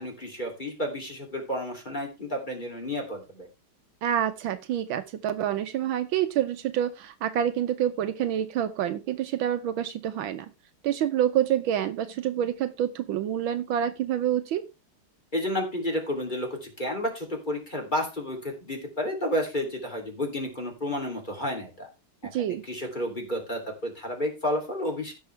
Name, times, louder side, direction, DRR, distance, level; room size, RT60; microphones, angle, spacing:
voice 1, 0.0-3.5 15.3-21.9 22.2-25.1, left 1 dB, 20° left, 2 dB, 2.9 m, -31 dB
voice 2, 4.0-10.5 10.8-14.6 22.3-22.6, right 10 dB, 75° right, 10 dB, 1.4 m, -27 dB
16.0 x 6.4 x 3.3 m, 0.26 s
omnidirectional pair, 2.3 m